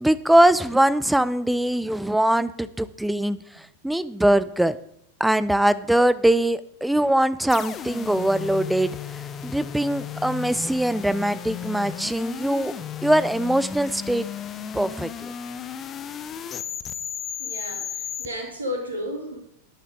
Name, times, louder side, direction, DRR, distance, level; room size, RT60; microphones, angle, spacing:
voice 1, 0.0-3.4 3.8-4.8 5.2-9.0 9.4-12.7 13.0-14.3 14.7-15.3, right 1 dB, 5° right, 16 dB, 0.5 m, -21 dB
sound 1, 7.5-18.3, left 8 dB, 25° left, 0.8 m, -34 dB
voice 2, 17.4-19.4, left 1 dB, 75° right, 1 dB, 2.9 m, -32 dB
12.5 x 9.1 x 3.8 m, 0.75 s
figure-of-eight pair, 90°, 0 cm